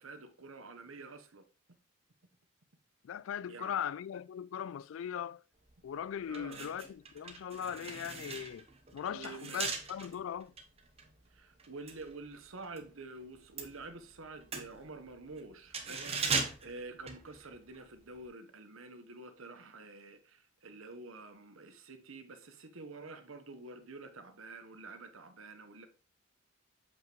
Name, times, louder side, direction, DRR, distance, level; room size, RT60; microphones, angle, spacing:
voice 1, 0.0-1.4 3.5-3.8 6.3-6.6 9.1-9.7 11.3-25.9, right 3 dB, 85° right, 1.0 m, -48 dB
voice 2, 3.0-5.4 5.8-8.6 8.9-10.5, left 9 dB, 75° left, 0.3 m, -39 dB
sound 1, 5.7-5.8 6.3-12.9 13.2-17.8 18.1-18.3, right 4 dB, 30° right, 0.9 m, -39 dB
7.3 x 5.2 x 3.1 m
head